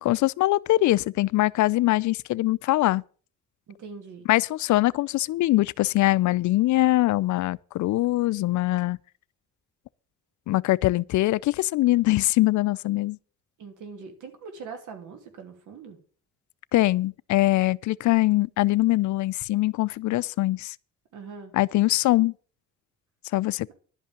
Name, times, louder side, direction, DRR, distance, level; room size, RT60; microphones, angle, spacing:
voice 1, 0.0-3.0 4.3-9.0 10.5-13.2 16.7-20.8 21.5-22.3 23.3-23.7, left 17 dB, 70° left, 0.5 m, -22 dB
voice 2, 3.7-4.3 13.6-16.0 21.1-21.5, right 5 dB, 80° right, 2.8 m, -42 dB
11.5 x 5.5 x 8.8 m
cardioid pair, 90°, 30 cm